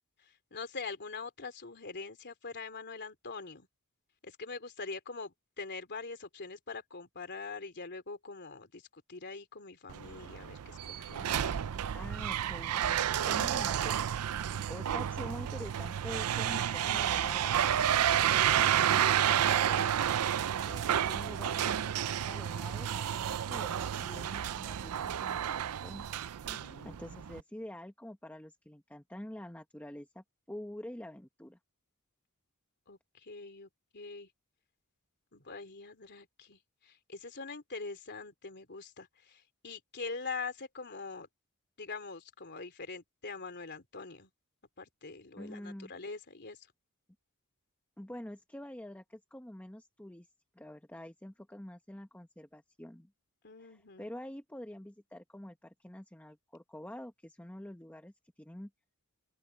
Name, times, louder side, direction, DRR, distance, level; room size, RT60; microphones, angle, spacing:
voice 1, 0.2-3.7 4.2-11.6 26.4-27.0 32.9-34.3 35.3-41.3 41.8-44.3 44.8-46.7 53.4-54.1, left 4 dB, 50° left, 3.4 m, -44 dB
sound 1, 9.9-27.4, right 10 dB, 85° right, 0.5 m, -31 dB
voice 2, 11.9-14.0 14.7-17.8 18.5-20.0 20.6-26.0 26.5-31.6 45.4-45.9 48.0-50.3 50.5-53.1 53.6-58.7, left 1 dB, 5° left, 1.0 m, -47 dB
open air
head